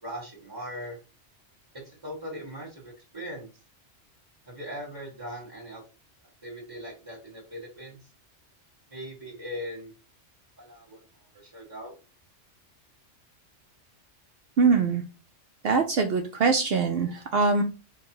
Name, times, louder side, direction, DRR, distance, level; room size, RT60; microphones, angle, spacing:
voice 1, 0.0-1.0 1.8-3.5 4.5-5.8 6.4-8.0 8.9-9.9 10.6-11.0 11.3-11.9, equal, 15° right, -6 dB, 1.4 m, -39 dB
voice 2, 14.6-15.0 15.6-17.6, right 4 dB, 65° right, 5 dB, 0.7 m, -23 dB
4.6 x 2.2 x 4.6 m, 0.31 s
omnidirectional pair, 1.2 m